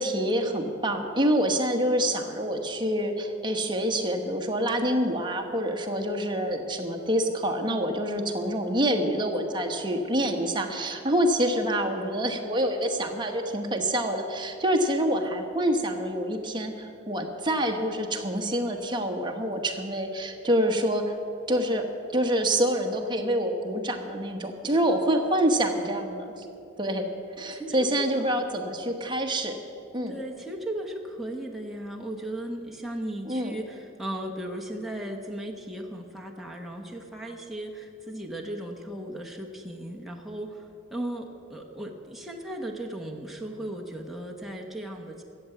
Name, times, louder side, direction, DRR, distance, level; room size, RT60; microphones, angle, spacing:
voice 1, 0.0-21.1 21.5-21.9 22.1-26.5 26.8-27.1 27.4-29.6 29.9-30.1 33.3-33.5, equal, 25° right, 3 dB, 1.2 m, -26 dB
voice 2, 27.5-28.4 30.1-45.2, right 1 dB, ahead, 0 dB, 1.1 m, -36 dB
14.0 x 7.8 x 9.1 m, 2.7 s
head